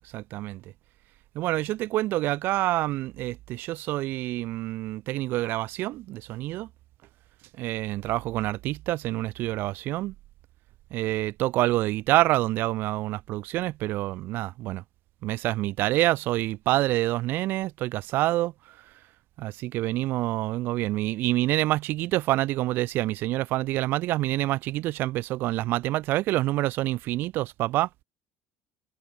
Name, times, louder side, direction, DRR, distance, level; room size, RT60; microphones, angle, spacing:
voice 1, 0.1-0.6 1.3-6.7 7.6-10.1 10.9-14.8 15.2-18.5 19.4-28.0, right 16 dB, 60° right, 7.9 m, -27 dB
cardioid pair, 155°, 4 cm